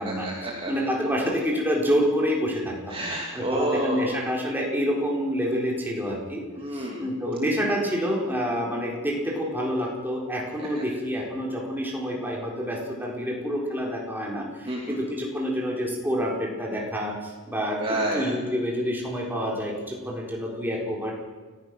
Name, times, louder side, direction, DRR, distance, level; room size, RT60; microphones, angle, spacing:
voice 1, 0.0-0.7 2.9-4.2 6.6-7.0 10.6-10.8 14.7-15.0 17.8-18.3, right 1 dB, 25° right, -2 dB, 2.6 m, -29 dB
voice 2, 0.6-3.0 3.3-6.4 6.7-17.8 18.1-21.1, equal, 10° right, -2 dB, 4.2 m, -27 dB
28.5 x 15.0 x 6.3 m, 1.3 s
head